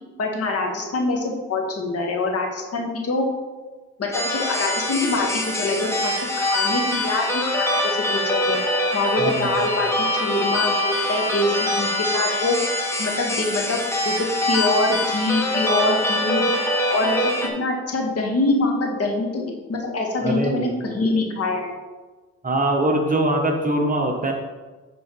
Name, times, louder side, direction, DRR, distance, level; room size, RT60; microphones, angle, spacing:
voice 1, 0.2-3.3 4.0-5.3 5.5-8.6 8.9-9.9 10.2-12.6 13.0-13.8 14.0-16.4 16.9-17.3 17.6-21.7, left 2 dB, 50° left, 1 dB, 1.7 m, -24 dB
sound 1, 4.1-17.5, left 1 dB, 10° left, 1.3 m, -24 dB
voice 2, 9.2-9.5 20.2-21.0 22.4-24.3, right 1 dB, 25° right, 2 dB, 1.2 m, -22 dB
9.7 x 4.0 x 4.6 m, 1.3 s
cardioid pair, 90°, 30 cm